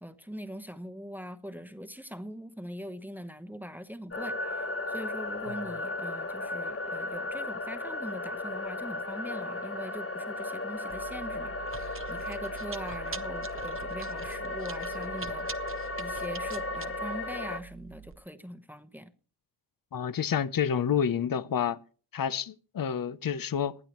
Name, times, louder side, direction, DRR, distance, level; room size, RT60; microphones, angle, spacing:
voice 1, 0.0-15.5 16.0-19.1, equal, 5° right, 0.9 m, -42 dB
sound 1, 4.1-17.6, left 2 dB, 35° left, 1.1 m, -35 dB
Chewing mastication, 10.9-18.1, right 7 dB, 30° right, 0.7 m, -44 dB
voice 2, 19.9-21.8 22.1-23.8, left 8 dB, 55° left, 0.7 m, -29 dB
19.5 x 12.5 x 3.0 m
wide cardioid pair, 110°, 40 cm